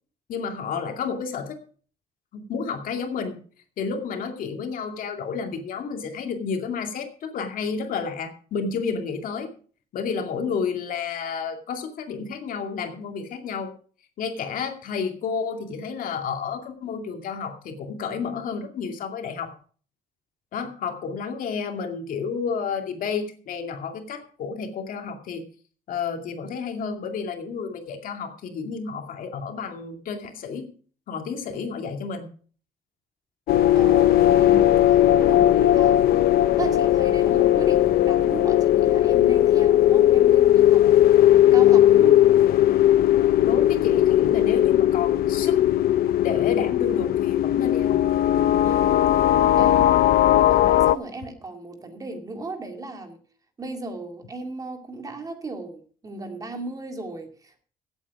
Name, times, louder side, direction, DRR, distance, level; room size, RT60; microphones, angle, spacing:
voice 1, 0.3-1.6 2.3-3.4 3.8-9.5 9.9-13.7 14.2-19.5 20.5-25.4 25.9-30.7 31.1-32.3 35.3-35.5 43.4-45.6 46.2-48.0 49.6-49.9, left 5 dB, 65° left, 4 dB, 2.3 m, -31 dB
sound 1, 33.5-51.0, left 12 dB, 80° left, 0.6 m, -18 dB
voice 2, 33.7-36.0 36.6-42.2 48.6-49.0 49.3-49.8 50.5-53.2 53.6-57.6, right 3 dB, 25° right, 5 dB, 2.1 m, -36 dB
16.5 x 8.4 x 4.8 m, 0.44 s
cardioid pair, 160°, 15 cm